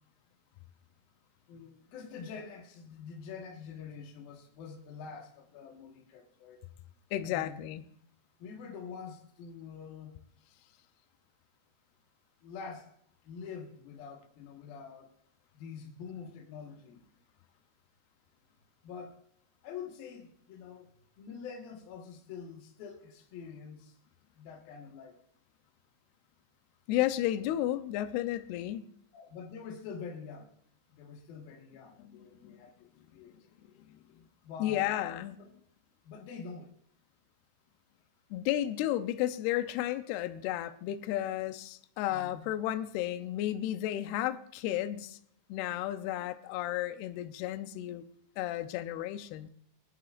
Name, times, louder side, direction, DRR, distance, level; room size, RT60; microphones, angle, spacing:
voice 1, 1.5-6.7 7.2-7.6 8.4-10.2 12.4-12.9 13.2-15.1 15.5-17.0 18.8-19.2 19.6-20.9 21.2-23.9 24.4-25.2 29.1-30.5 30.9-33.3 34.4-35.1 35.4-35.5 36.0-36.7 42.1-42.5, left 6 dB, 60° left, 2.8 m, -46 dB
voice 2, 7.1-7.8 26.9-28.9 32.0-32.2 32.4-32.6 34.2-34.3 34.6-35.3 38.3-45.2 45.5-48.0 48.4-49.5, left 13 dB, 90° left, 2.3 m, -33 dB
23.5 x 12.0 x 2.5 m
omnidirectional pair, 5.5 m